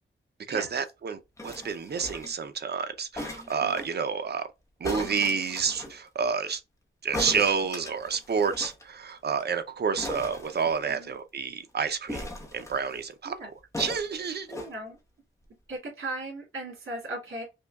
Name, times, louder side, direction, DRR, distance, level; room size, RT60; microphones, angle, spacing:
voice 1, 0.5-4.5 4.8-6.6 7.0-13.4 13.8-14.5, right 6 dB, 50° right, 0.6 m, -29 dB
sound 1, 1.4-2.4 3.1-3.9 4.8-5.9 7.1-8.8 9.1-9.2 9.4-9.5 10.0-11.1 12.1-13.0 13.7-14.7 15.4-15.5, left 1 dB, 15° left, 0.8 m, -38 dB
voice 2, 14.5-15.0 15.7-17.4, right 2 dB, 70° right, 2.3 m, -37 dB
5.4 x 2.3 x 2.3 m
wide cardioid pair, 175°, 21 cm